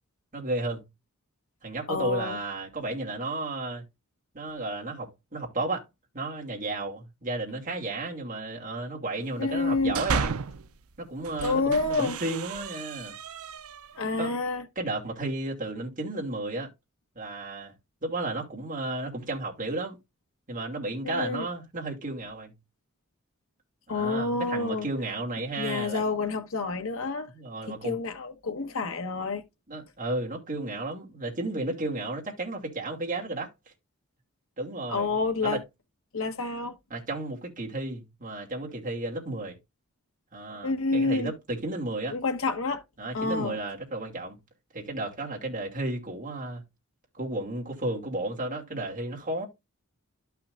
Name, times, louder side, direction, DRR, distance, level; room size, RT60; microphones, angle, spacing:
voice 1, 0.3-0.8 1.6-3.8 4.3-5.9 6.1-10.4 11.0-13.2 14.2-14.3 14.8-16.7 17.2-17.7 18.0-20.0 20.5-22.5 23.9-26.0 27.3-28.0 29.7-33.5 34.6-35.1 35.4-35.6 36.9-39.6 40.3-42.2 43.0-44.4 44.7-46.6 47.2-49.5, right 2 dB, 40° right, 2.4 m, -33 dB
voice 2, 1.9-2.4 9.4-10.0 11.4-12.2 14.0-14.6 21.0-21.5 23.9-24.9 25.6-27.3 27.7-29.4 34.9-35.6 36.1-36.7 40.6-41.3 42.1-42.8 43.1-43.6, left 3 dB, 70° left, 1.3 m, -28 dB
sound 1, 9.6-10.7 11.2-14.0, right 5 dB, 75° right, 0.5 m, -34 dB
12.0 x 5.8 x 2.5 m
head